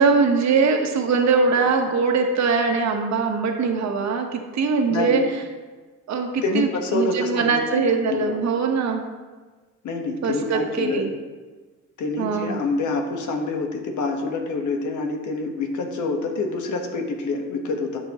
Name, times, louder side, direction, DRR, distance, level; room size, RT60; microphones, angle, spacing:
voice 1, 0.0-5.2 6.1-6.7 6.9-9.0 10.2-11.1 12.2-12.6, right 4 dB, 65° right, 3 dB, 1.3 m, -21 dB
voice 2, 4.9-5.3 6.4-8.4 9.8-11.1 12.0-18.0, left 3 dB, 75° left, 3 dB, 1.4 m, -27 dB
11.0 x 6.9 x 3.0 m, 1.3 s
cardioid pair, 90°, 30 cm